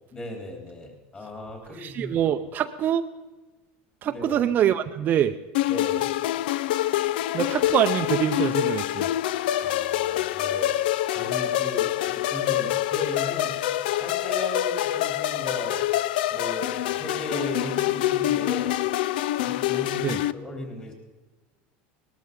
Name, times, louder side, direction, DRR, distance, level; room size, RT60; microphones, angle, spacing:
voice 1, 0.1-2.1 4.0-4.4 5.7-6.1 9.6-13.6 14.0-15.8 16.3-18.8 19.4-20.9, left 1 dB, 20° left, 2 dB, 3.5 m, -36 dB
voice 2, 1.7-3.1 4.0-5.4 7.3-9.1 20.0-20.2, right 10 dB, 35° right, 8 dB, 0.6 m, -24 dB
sound 1, 5.5-20.3, left 14 dB, 90° left, 0.5 m, -26 dB
19.5 x 13.0 x 5.4 m, 1.2 s
supercardioid pair, 135°, 5 cm